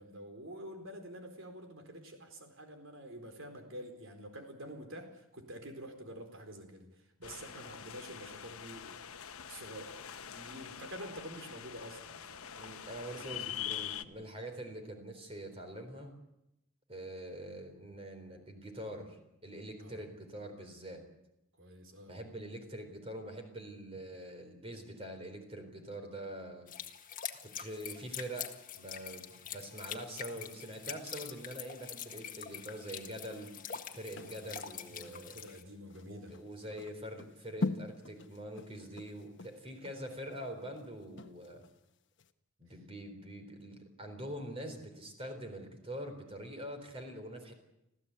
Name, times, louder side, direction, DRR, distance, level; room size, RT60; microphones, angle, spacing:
voice 1, 0.0-6.9 7.2-9.0 9.5-10.0 10.3-12.8 13.1-13.7 19.8-20.0 21.6-22.2 34.2-34.4 34.9-36.4, equal, 60° right, 5 dB, 4.4 m, -48 dB
sound 1, 7.2-14.0, left 9 dB, 85° left, 1.1 m, -44 dB
voice 2, 12.6-16.1 16.9-21.0 22.1-26.7 27.4-33.6 33.9-35.4 36.0-41.6 42.6-47.5, right 1 dB, 25° right, 5 dB, 4.0 m, -44 dB
sound 2, 26.7-35.6, left 9 dB, 40° left, 1.6 m, -45 dB
sound 3, 33.3-41.8 42.2-42.3, left 3 dB, 55° left, 1.2 m, -43 dB
26.0 x 15.5 x 8.4 m, 0.87 s
head